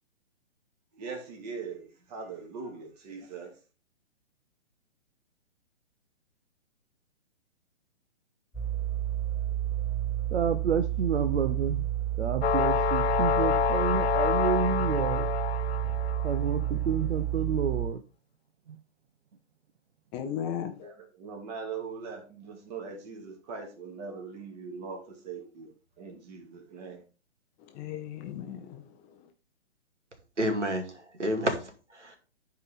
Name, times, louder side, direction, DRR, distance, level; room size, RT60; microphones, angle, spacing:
voice 1, 0.9-3.5 20.8-27.0, right 5 dB, 35° right, 2.5 m, -41 dB
sound 1, 8.5-17.9, right 13 dB, ahead, 1.3 m, -30 dB
voice 2, 10.3-11.9 12.2-15.3 16.2-18.0 18.7-18.8, right 7 dB, 70° right, 0.8 m, -29 dB
sound 2, 12.4-16.5, left 10 dB, 60° left, 0.5 m, -28 dB
voice 3, 20.1-20.9 27.6-29.3, left 9 dB, 15° left, 0.6 m, -37 dB
voice 4, 30.4-32.2, equal, 90° right, 2.4 m, -30 dB
12.0 x 4.8 x 3.7 m
figure-of-eight pair, 130°, 35 cm